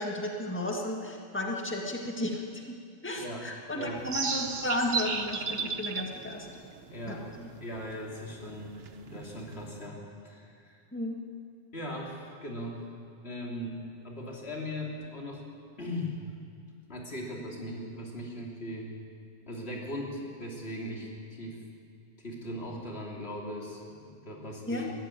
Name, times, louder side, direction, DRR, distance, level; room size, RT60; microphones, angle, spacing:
voice 1, 0.0-2.7 3.0-6.5 7.1-7.5 10.9-11.2 24.7-24.9, left 1 dB, 10° left, 0 dB, 1.9 m, -33 dB
voice 2, 3.2-3.5 3.7-4.0 6.9-7.3 7.6-10.8 11.7-12.8 13.2-13.8 14.0-15.4 15.8-16.2 16.9-18.9 19.5-21.6 22.2-24.9, left 1 dB, 80° left, -2 dB, 3.5 m, -39 dB
sound 1, 4.0-9.9, right 5 dB, 70° right, 1.2 m, -36 dB
20.0 x 14.0 x 9.1 m, 2.3 s
omnidirectional pair, 1.1 m